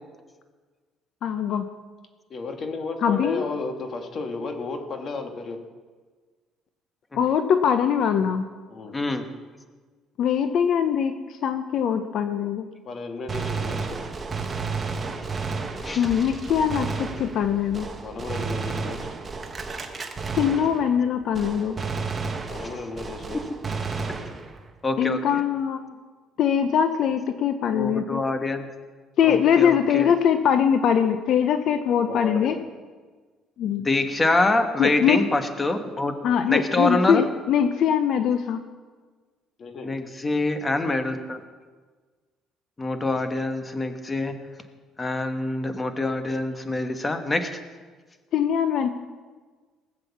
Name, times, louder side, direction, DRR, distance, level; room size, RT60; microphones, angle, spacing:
voice 1, 1.2-1.7 3.0-3.4 7.2-8.4 10.2-12.6 16.0-17.9 20.3-21.8 25.0-25.8 26.4-28.2 29.2-32.5 33.6-33.8 34.8-35.2 36.2-38.6 48.3-48.9, left 8 dB, 60° left, 9 dB, 0.7 m, -22 dB
voice 2, 2.3-5.6 8.7-9.0 12.9-14.0 18.0-19.0 22.5-23.4 32.1-32.6 39.6-40.0, left 3 dB, 40° left, 5 dB, 1.8 m, -33 dB
voice 3, 8.9-9.2 15.8-16.1 23.3-23.4 24.8-25.2 27.7-28.7 29.2-30.1 33.8-36.1 36.5-37.2 39.8-41.4 42.8-44.3 45.0-47.6, left 2 dB, 20° left, 8 dB, 1.3 m, -25 dB
Gunshot gunfire, 13.3-21.1 21.3-24.7, right 4 dB, 25° right, 1.3 m, -32 dB
19.0 x 7.7 x 7.1 m, 1.4 s
cardioid pair, 130°, 0 cm